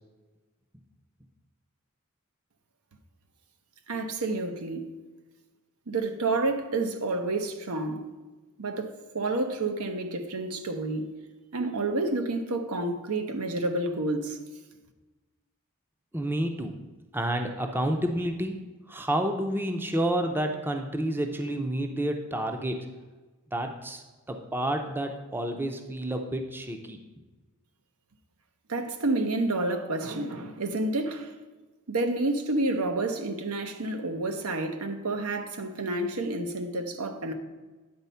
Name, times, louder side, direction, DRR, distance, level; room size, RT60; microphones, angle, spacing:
voice 1, 3.9-4.9 5.9-8.0 8.6-11.1 11.5-14.4 28.7-31.3 31.9-37.3, right 2 dB, 85° right, 0.9 m, -29 dB
voice 2, 16.1-16.7 17.1-18.6 18.9-22.9 23.5-27.0, right 1 dB, 10° right, 0.5 m, -29 dB
9.5 x 4.1 x 5.6 m
head